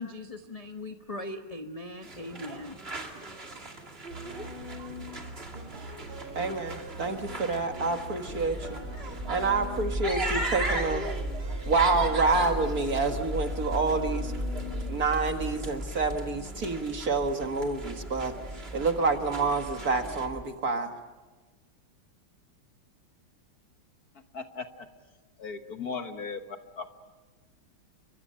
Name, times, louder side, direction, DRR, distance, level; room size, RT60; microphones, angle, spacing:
voice 1, 0.0-2.8, left 2 dB, 25° left, 5 dB, 0.8 m, -39 dB
sound 1, 2.0-20.3, right 2 dB, 30° right, 2.6 m, -39 dB
sound 2, 4.1-14.9, equal, 65° right, 3.5 m, -43 dB
voice 2, 6.4-8.8 9.3-11.1 11.7-14.3 14.9-18.3 18.7-20.9, right 3 dB, 45° right, 6 dB, 2.0 m, -28 dB
sound 3, 8.3-20.4, equal, 5° right, 1.9 m, -37 dB
voice 3, 24.3-24.9 25.4-26.4 26.8-26.9, left 5 dB, 50° left, 7 dB, 1.6 m, -37 dB
30.0 x 24.5 x 5.6 m, 1.2 s
omnidirectional pair, 2.3 m